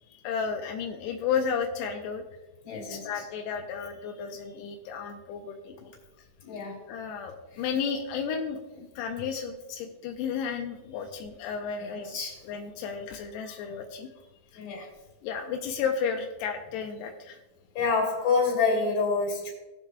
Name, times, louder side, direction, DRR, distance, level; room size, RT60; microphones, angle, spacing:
voice 1, 0.1-2.2 2.7-5.9 6.9-12.2 12.4-14.1 15.2-17.4, left 6 dB, 90° left, 3 dB, 2.4 m, -33 dB
voice 2, 2.6-3.2 6.4-6.8 7.5-7.6 11.8-12.4 14.5-14.9 17.7-19.5, left 4 dB, 35° left, 0 dB, 3.3 m, -28 dB
19.0 x 7.3 x 2.3 m, 1.1 s
omnidirectional pair, 5.7 m